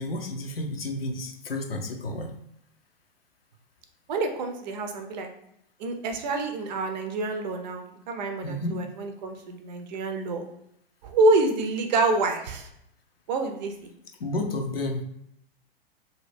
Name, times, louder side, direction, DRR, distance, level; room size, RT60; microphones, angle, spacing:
voice 1, 0.0-2.3 8.4-8.8 14.2-15.0, left 2 dB, 80° left, 3 dB, 0.8 m, -31 dB
voice 2, 4.1-5.3 5.8-10.4 11.0-12.7 13.3-13.9, right 2 dB, 50° right, 4 dB, 0.6 m, -27 dB
2.7 x 2.7 x 3.2 m, 0.77 s
figure-of-eight pair, 110°, 29 cm